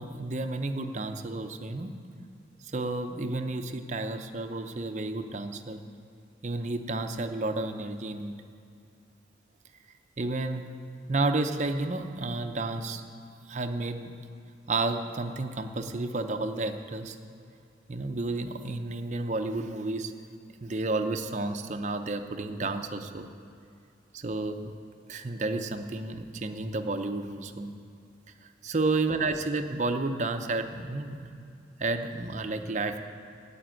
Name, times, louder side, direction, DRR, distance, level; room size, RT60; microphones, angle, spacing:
voice 1, 0.0-1.9 2.7-5.8 6.4-8.3 10.2-10.7 11.1-13.0 13.5-14.1 14.7-17.2 17.9-20.1 20.6-23.3 24.1-24.7 25.1-27.7 28.6-31.3 31.8-33.0, right 2 dB, 40° right, 7 dB, 0.7 m, -31 dB
9.4 x 8.6 x 8.9 m, 2.5 s
head